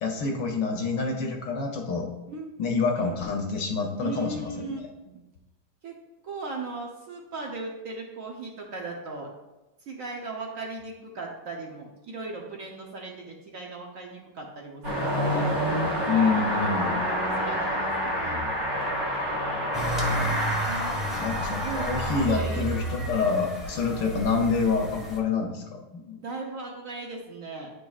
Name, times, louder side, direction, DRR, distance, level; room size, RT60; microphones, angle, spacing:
voice 1, 0.0-2.1 2.6-4.9 16.0-17.0 20.1-20.8 21.2-26.2, left 4 dB, 70° left, 2 dB, 1.2 m, -27 dB
voice 2, 4.0-5.2 5.8-5.9 6.2-9.3 9.9-15.5 16.1-18.5 20.7-21.2 21.6-22.7 26.2-27.7, right 3 dB, 70° right, 0 dB, 0.7 m, -37 dB
Car passing by / Accelerating revving vroom, 14.8-22.3, equal, 45° right, 1.6 m, -28 dB
sound 1, 19.7-25.2, right 1 dB, ahead, 0.7 m, -32 dB
9.3 x 5.3 x 2.3 m, 1.1 s
omnidirectional pair, 2.4 m